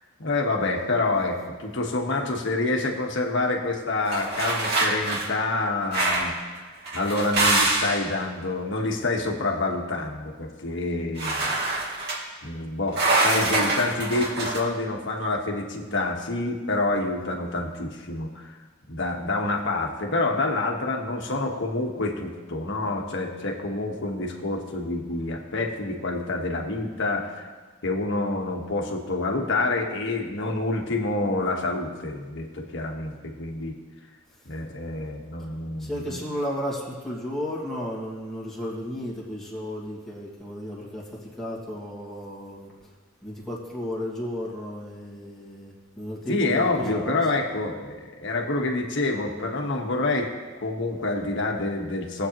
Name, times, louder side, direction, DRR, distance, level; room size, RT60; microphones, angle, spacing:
voice 1, 0.2-11.5 12.4-18.5 18.9-27.5 27.8-33.8 34.5-36.2 46.3-50.3 50.6-52.3, left 2 dB, 65° left, 2 dB, 1.3 m, -27 dB
sound 1, 4.1-5.3 5.9-6.4 6.8-8.1 11.2-12.2 12.9-14.6, right 2 dB, 55° right, 2.3 m, -24 dB
voice 2, 35.8-42.7 43.2-47.2, equal, ahead, -6 dB, 1.9 m, -33 dB
19.0 x 8.0 x 3.0 m, 1.4 s
head